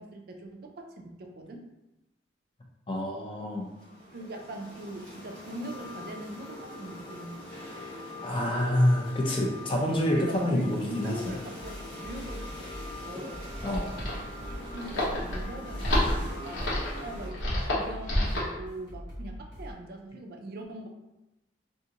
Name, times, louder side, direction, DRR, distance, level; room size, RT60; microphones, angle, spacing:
voice 1, 0.0-1.6 4.1-7.5 10.2-12.7 13.0-13.6 14.7-16.7 17.0-20.9, right 1 dB, 55° right, 3 dB, 0.4 m, -41 dB
voice 2, 2.9-3.7 8.2-11.1 13.6-14.0, left 1 dB, 30° left, -1 dB, 0.4 m, -27 dB
sound 1, 3.5-17.3, left 1 dB, 5° left, 0.8 m, -43 dB
sound 2, 11.2-19.7, equal, 65° left, 1.1 m, -43 dB
sound 3, 13.4-18.6, left 1 dB, 80° left, 0.8 m, -29 dB
2.5 x 2.5 x 2.8 m, 0.97 s
head